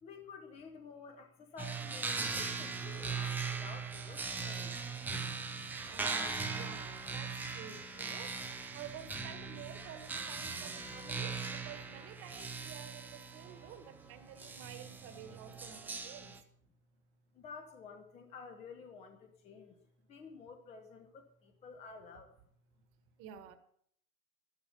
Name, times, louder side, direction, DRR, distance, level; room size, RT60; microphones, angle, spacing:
voice 1, 0.0-5.0 17.3-19.8 20.1-22.4, left 5 dB, 15° left, 5 dB, 1.0 m, -51 dB
sound 1, 1.6-16.4, right 4 dB, 5° right, 0.7 m, -40 dB
voice 2, 5.9-16.4 23.2-23.6, right 9 dB, 30° right, 9 dB, 1.7 m, -51 dB
13.0 x 12.0 x 5.6 m, 0.65 s
hypercardioid pair, 130°, 45 cm